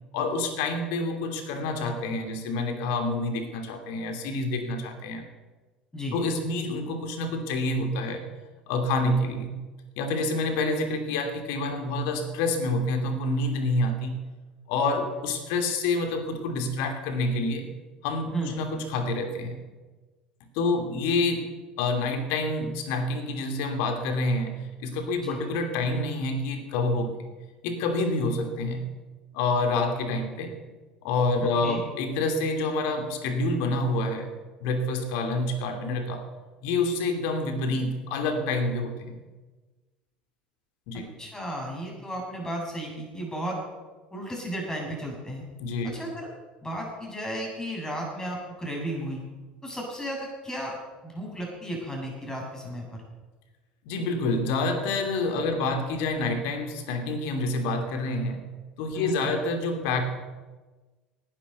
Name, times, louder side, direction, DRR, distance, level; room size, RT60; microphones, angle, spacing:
voice 1, 0.1-5.3 6.1-8.3 8.7-9.6 10.0-14.1 14.7-17.7 18.0-19.6 20.5-27.3 27.6-28.9 29.3-30.6 31.0-34.3 34.6-36.3 36.6-39.2 40.9-41.1 45.6-46.0 53.8-58.5 58.8-60.0, left 2 dB, 60° left, 6 dB, 2.9 m, -28 dB
voice 2, 31.4-31.8 41.2-43.6 44.1-45.4 45.8-46.3 46.6-49.2 49.6-50.8 51.0-53.0 58.9-59.2, right 1 dB, 15° left, -1 dB, 7.6 m, -34 dB
18.0 x 11.0 x 6.9 m, 1.3 s
figure-of-eight pair, 65°, 5 cm